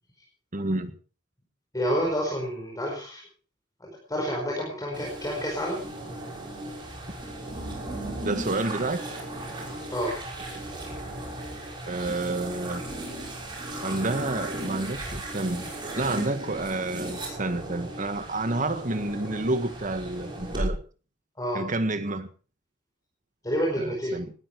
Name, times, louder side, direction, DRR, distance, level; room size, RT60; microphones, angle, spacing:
voice 1, 0.5-0.9 8.2-9.0 11.9-12.8 13.8-15.7 16.0-20.8 21.5-22.3 23.8-24.3, right 2 dB, 40° right, 1.6 m, -29 dB
voice 2, 1.7-3.2 3.8-5.8 9.9-10.1 21.4-21.6 23.4-24.1, equal, 20° left, 4.9 m, -29 dB
sound 1, 4.9-20.7, right 1 dB, 25° right, 6.1 m, -36 dB
19.0 x 13.5 x 4.7 m
head